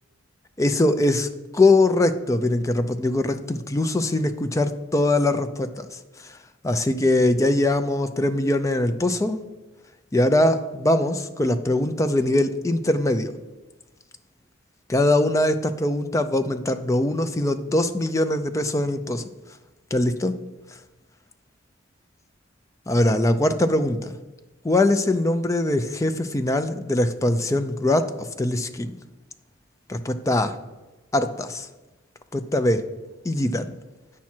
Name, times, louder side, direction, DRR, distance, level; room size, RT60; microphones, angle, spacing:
voice 1, 0.6-1.3 1.5-6.4 6.6-9.4 10.1-13.3 14.9-19.2 19.9-20.3 22.9-24.1 24.6-28.9 29.9-30.6 31.1-31.7 32.3-32.8 33.2-33.7, left 1 dB, 15° left, 9 dB, 0.4 m, -22 dB
8.4 x 5.9 x 4.4 m, 1.1 s
head